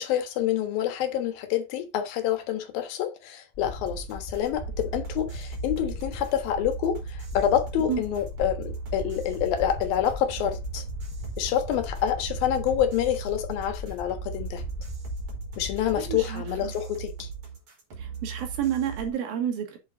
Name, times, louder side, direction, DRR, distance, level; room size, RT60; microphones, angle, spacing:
voice 1, 0.0-10.8 11.4-14.6 15.6-17.3, left 10 dB, 80° left, 3.2 m, -27 dB
sound 1, 3.5-16.2, left 3 dB, 35° left, 1.8 m, -38 dB
sound 2, 3.9-19.1, right 7 dB, 60° right, 5.4 m, -39 dB
voice 2, 16.0-16.7 18.0-19.8, right 9 dB, 80° right, 4.2 m, -30 dB
8.4 x 7.5 x 4.0 m
omnidirectional pair, 4.2 m